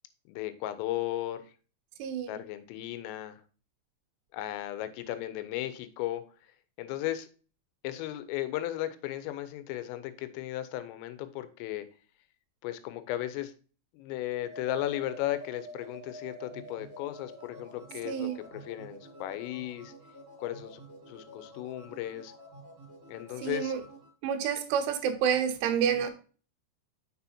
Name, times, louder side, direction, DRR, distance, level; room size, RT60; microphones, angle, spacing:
voice 1, 0.3-1.4 2.3-3.4 4.3-6.3 6.8-7.3 7.8-11.9 12.6-13.5 13.9-19.9 20.4-20.8 21.1-22.3 23.1-23.7, left 14 dB, 85° left, 12 dB, 3.3 m, -35 dB
voice 2, 2.0-2.3 18.1-18.4 23.4-23.8 24.2-26.1, right 8 dB, 80° right, 7 dB, 3.0 m, -28 dB
sound 1, 14.3-24.1, right 1 dB, 35° right, 2.0 m, -49 dB
6.9 x 6.2 x 2.7 m, 0.37 s
omnidirectional pair, 5.8 m